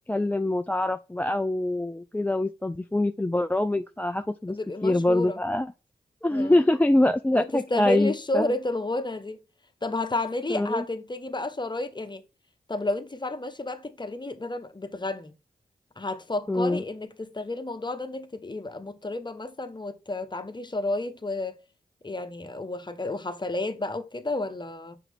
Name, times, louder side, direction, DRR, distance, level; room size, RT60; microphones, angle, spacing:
voice 1, 0.1-4.6 4.8-5.7 6.2-8.5 10.5-10.9 16.5-16.8, left 1 dB, 10° left, 0.4 m, -24 dB
voice 2, 4.5-5.4 6.3-6.6 7.3-9.4 9.8-12.2 12.7-15.3 16.0-21.6 22.0-25.0, left 2 dB, 25° left, 1.0 m, -31 dB
5.8 x 4.6 x 3.5 m
cardioid pair, 45°, 16 cm